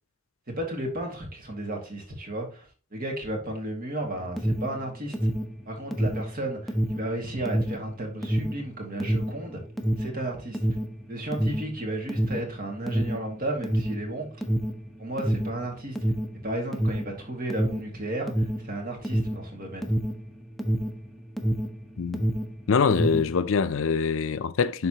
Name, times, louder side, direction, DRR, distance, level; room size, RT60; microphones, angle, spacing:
voice 1, 0.6-2.7 2.9-5.1 5.7-9.6 10.0-10.6 11.1-14.4 15.0-16.0 16.4-19.9, right 1 dB, 45° right, 2.1 m, -33 dB
Alarm, 4.3-21.8 22.1-23.4, right 1 dB, ahead, 0.8 m, -27 dB
voice 2, 22.7-24.9, left 5 dB, 70° left, 0.5 m, -24 dB
11.0 x 4.0 x 2.9 m
head